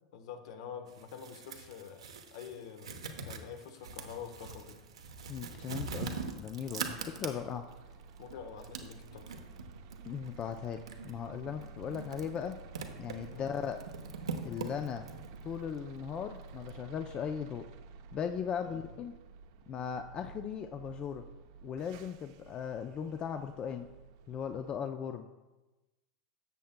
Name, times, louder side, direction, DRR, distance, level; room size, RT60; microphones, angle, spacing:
voice 1, 0.1-4.8 8.2-9.3 13.3-13.5 18.6-18.8, left 7 dB, 65° left, 7 dB, 1.1 m, -46 dB
sound 1, 0.9-7.7 8.2-16.7, right 5 dB, 90° right, 1.0 m, -43 dB
voice 2, 5.3-6.1 6.4-7.7 10.0-12.6 13.0-13.8 14.4-15.1 15.4-17.7 18.1-19.1 19.7-21.2 21.6-23.9 24.3-25.3, left 7 dB, 35° left, 6 dB, 0.5 m, -38 dB
sound 2, 6.6-24.8, right 5 dB, 60° right, 0.7 m, -52 dB
13.5 x 7.3 x 2.2 m, 1.1 s
hypercardioid pair, 95°, 3 cm